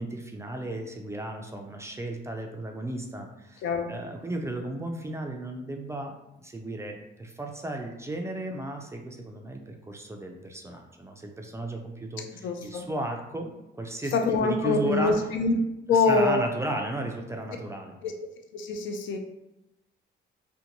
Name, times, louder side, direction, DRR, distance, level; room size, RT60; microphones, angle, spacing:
voice 1, 0.0-15.3 15.9-17.9, right 1 dB, 15° right, 3 dB, 0.3 m, -35 dB
voice 2, 12.4-12.8 14.1-15.5 15.9-16.4 18.0-18.1 18.5-19.2, left 4 dB, 75° left, 4 dB, 0.4 m, -24 dB
2.6 x 2.1 x 2.8 m, 0.90 s
cardioid pair, 90°, 20 cm